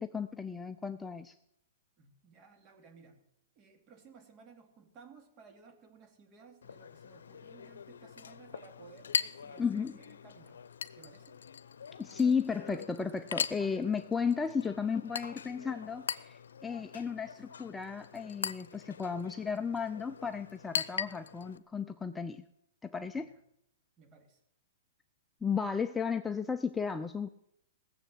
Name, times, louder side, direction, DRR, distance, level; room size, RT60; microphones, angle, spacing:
voice 1, 0.0-1.3 9.6-10.0 12.0-22.4 22.8-23.3 25.4-27.3, left 6 dB, 10° left, 8 dB, 0.5 m, -34 dB
voice 2, 2.0-3.2 3.6-10.6 11.0-11.4 23.2-23.4 24.0-24.4, right 5 dB, 30° right, 5 dB, 2.5 m, -57 dB
Chink clink, 6.6-21.6, left 7 dB, 85° left, 0.7 m, -41 dB
18.0 x 7.6 x 7.7 m, 0.78 s
hypercardioid pair, 145°, 0 cm